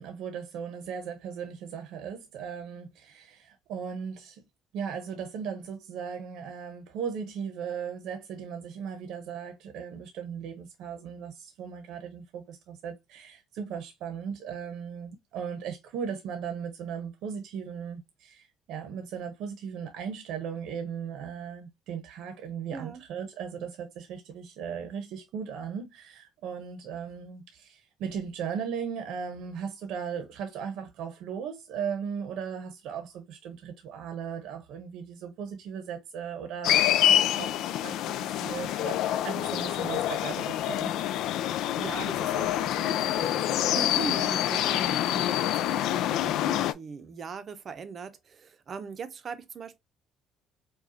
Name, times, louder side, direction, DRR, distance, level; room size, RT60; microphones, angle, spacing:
voice 1, 0.0-4.4 4.7-41.0, right 7 dB, 75° right, 0.8 m, -37 dB
voice 2, 22.7-23.0 41.2-49.8, right 5 dB, 40° right, 0.6 m, -40 dB
sound 1, 36.6-46.7, left 12 dB, 75° left, 0.3 m, -26 dB
4.9 x 2.3 x 2.6 m
cardioid pair, 130°, 0 cm